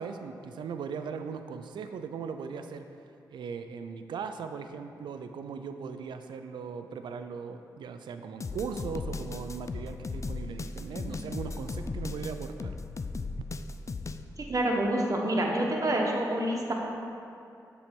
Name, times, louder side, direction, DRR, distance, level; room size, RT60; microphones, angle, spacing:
voice 1, 0.0-2.9 3.3-12.7, right 6 dB, 80° right, 8 dB, 0.4 m, -38 dB
sound 1, 8.4-14.2, left 3 dB, 40° left, 0.4 m, -36 dB
voice 2, 14.5-16.7, right 1 dB, 45° right, -1 dB, 1.2 m, -27 dB
6.9 x 4.4 x 5.3 m, 2.6 s
supercardioid pair, 45°, 8 cm